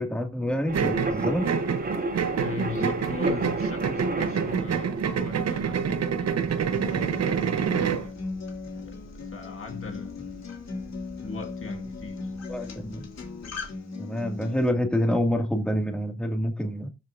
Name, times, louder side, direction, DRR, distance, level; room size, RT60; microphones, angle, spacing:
voice 1, 0.0-1.5 12.5-13.1 14.0-16.9, equal, 5° left, 2.1 m, -27 dB
sound 1, 0.7-13.7, right 2 dB, 35° right, 2.9 m, -34 dB
sound 2, 0.7-8.1, right 7 dB, 60° right, 0.9 m, -27 dB
voice 2, 2.4-8.2 8.8-10.6 11.2-12.3, left 4 dB, 45° left, 1.8 m, -40 dB
Acoustic guitar, 6.7-14.7, left 4 dB, 60° left, 2.6 m, -37 dB
19.0 x 6.4 x 2.6 m
cardioid pair, 110°, 29 cm